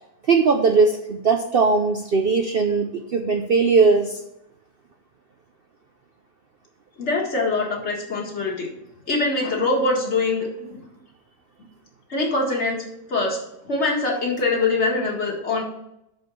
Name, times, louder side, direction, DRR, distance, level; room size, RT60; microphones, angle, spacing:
voice 1, 0.3-4.2, right 4 dB, 55° right, 3 dB, 0.7 m, -19 dB
voice 2, 7.0-8.7 9.1-10.8 12.1-12.8 13.1-15.6, left 3 dB, 50° left, 0 dB, 1.9 m, -23 dB
6.3 x 5.3 x 6.1 m, 0.84 s
omnidirectional pair, 1.5 m